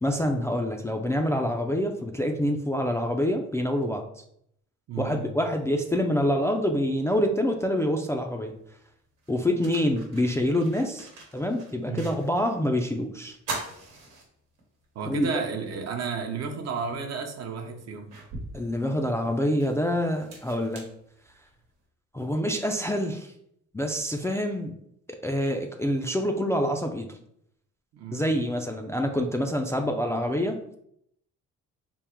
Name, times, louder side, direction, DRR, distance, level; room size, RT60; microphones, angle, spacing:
voice 1, 0.0-4.2 5.0-8.5 9.3-11.1 11.3-13.4 15.1-15.3 18.5-20.9 22.1-23.3 23.7-24.7 25.2-27.1 28.1-30.6, equal, 10° left, 2 dB, 0.3 m, -26 dB
voice 2, 4.9-5.3 11.8-12.1 14.9-18.1 27.9-28.3, right 5 dB, 60° right, 5 dB, 0.7 m, -32 dB
sound 1, 8.6-8.7 9.2-12.6 12.9-13.0 13.4-14.8 15.3-15.4 16.8-16.9 17.5-21.7, right 2 dB, 85° right, 1.1 m, -41 dB
3.6 x 2.0 x 4.3 m, 0.71 s
cardioid pair, 90°, 30 cm